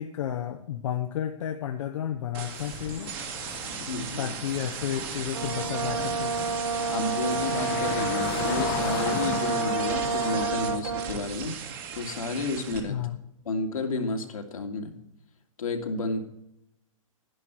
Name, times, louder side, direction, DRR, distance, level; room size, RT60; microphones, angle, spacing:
voice 1, 0.0-3.1 4.2-6.4 12.9-13.2, left 10 dB, 65° left, 5 dB, 0.9 m, -32 dB
sound 1, 2.3-12.8, right 7 dB, 40° right, 2.8 m, -37 dB
sound 2, 2.5-10.5, left 11 dB, 40° left, 0.9 m, -36 dB
voice 2, 3.9-4.4 6.9-11.6 11.9-13.0 13.5-14.9 15.6-16.2, left 3 dB, 85° left, 3 dB, 2.2 m, -31 dB
Brass instrument, 5.3-11.2, right 4 dB, 75° right, 1.2 m, -29 dB
11.0 x 11.0 x 4.6 m, 0.82 s
hypercardioid pair, 145°, 17 cm